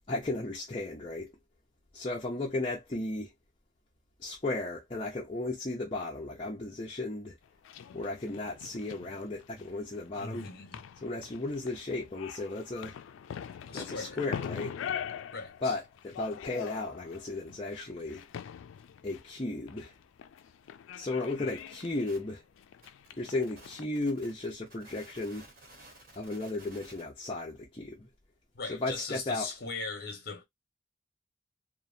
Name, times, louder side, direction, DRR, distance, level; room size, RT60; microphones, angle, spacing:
voice 1, 0.1-1.3 1.9-3.3 4.2-7.4 7.9-10.5 11.0-12.9 13.7-14.8 15.6-18.2 19.0-19.9 21.0-22.4 23.2-25.5 26.2-28.1 28.7-29.5, left 2 dB, 25° left, 0.6 m, -35 dB
sound 1, 7.4-23.9, left 8 dB, 80° left, 0.3 m, -43 dB
voice 2, 10.1-10.8 13.7-14.2 15.3-15.7 21.4-21.5 28.5-30.4, left 4 dB, 50° left, 1.0 m, -39 dB
sound 2, 21.4-27.0, right 1 dB, 45° right, 1.1 m, -54 dB
2.9 x 2.1 x 2.5 m
head